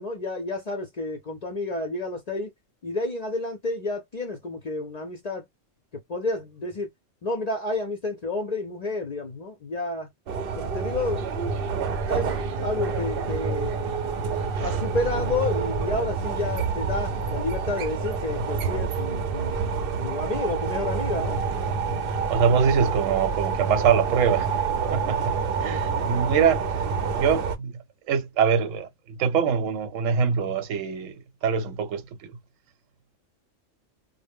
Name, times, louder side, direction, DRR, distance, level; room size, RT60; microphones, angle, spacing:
voice 1, 0.0-2.5 2.8-5.4 6.1-6.9 7.2-10.1 10.5-11.2 12.0-12.3 12.6-13.7 14.6-19.6 20.0-21.4, left 2 dB, 50° left, 0.5 m, -30 dB
sound 1, 10.3-27.6, right 5 dB, 60° right, 0.6 m, -27 dB
voice 2, 22.1-24.6 24.9-26.6 27.1-27.7 28.1-32.1, right 7 dB, 85° right, 1.0 m, -24 dB
2.1 x 2.0 x 3.4 m
omnidirectional pair, 1.3 m